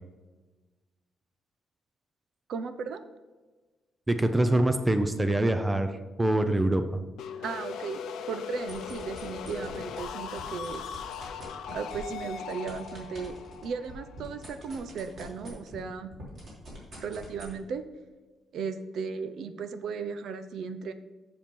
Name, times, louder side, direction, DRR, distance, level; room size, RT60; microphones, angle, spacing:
voice 1, 2.5-3.0 7.4-8.0 8.3-10.8 11.7-13.4 13.6-16.1 17.0-17.8 18.5-20.9, right 5 dB, 60° right, 10 dB, 0.6 m, -36 dB
voice 2, 4.1-5.9 6.2-7.0, right 1 dB, 10° right, 8 dB, 0.5 m, -24 dB
sound 1, 7.2-14.9, left 7 dB, 90° left, 0.6 m, -39 dB
sound 2, 8.5-10.0 10.3-15.8 16.1-17.5, right 1 dB, 40° right, 3.2 m, -45 dB
7.7 x 7.0 x 5.4 m, 1.3 s
cardioid pair, 175°, 0 cm